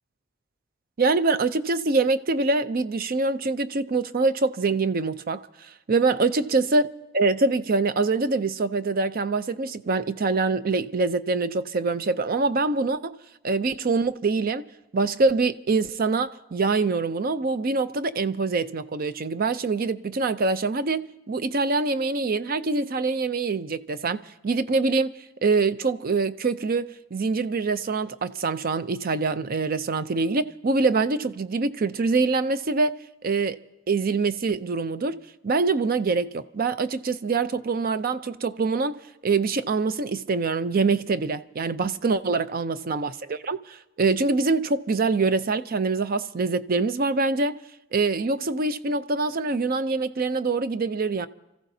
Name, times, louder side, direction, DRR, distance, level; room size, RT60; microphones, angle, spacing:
voice 1, 1.0-6.9 7.1-13.1 13.4-14.7 14.9-33.6 33.9-35.2 35.4-47.6 47.9-51.3, right 3 dB, 50° right, 0.5 m, -24 dB
29.5 x 15.0 x 2.7 m
head